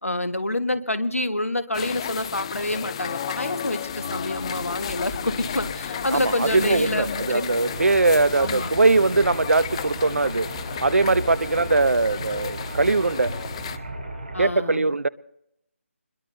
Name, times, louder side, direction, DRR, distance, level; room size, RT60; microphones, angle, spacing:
voice 1, 0.0-7.4 8.4-8.7 14.3-14.9, left 1 dB, 90° left, 1.4 m, -27 dB
sound 1, 1.7-13.8, left 9 dB, 25° left, 0.5 m, -33 dB
sound 2, 3.0-14.5, right 1 dB, 45° right, 5.2 m, -36 dB
voice 2, 6.1-10.5 10.8-13.3 14.4-15.1, right 3 dB, 75° right, 0.7 m, -21 dB
25.5 x 21.5 x 2.7 m
figure-of-eight pair, 155°, 7 cm